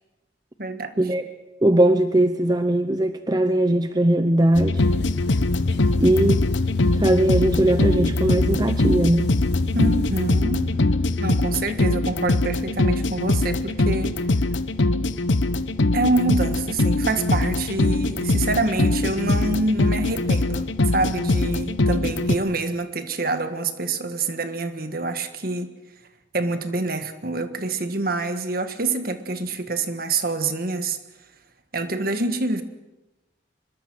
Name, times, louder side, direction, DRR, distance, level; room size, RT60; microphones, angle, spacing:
voice 1, 0.6-0.9 9.7-10.7 11.2-14.2 15.9-25.7 26.3-31.0 31.7-32.6, right 2 dB, 50° right, 9 dB, 1.6 m, -26 dB
voice 2, 1.6-4.9 6.0-6.4 6.9-9.3, right 1 dB, 20° right, 9 dB, 0.7 m, -20 dB
sound 1, 4.5-22.4, left 2 dB, 85° left, 1.1 m, -22 dB
sound 2, 4.7-10.4, left 2 dB, 60° left, 0.9 m, -32 dB
24.5 x 21.5 x 6.2 m, 1.0 s
head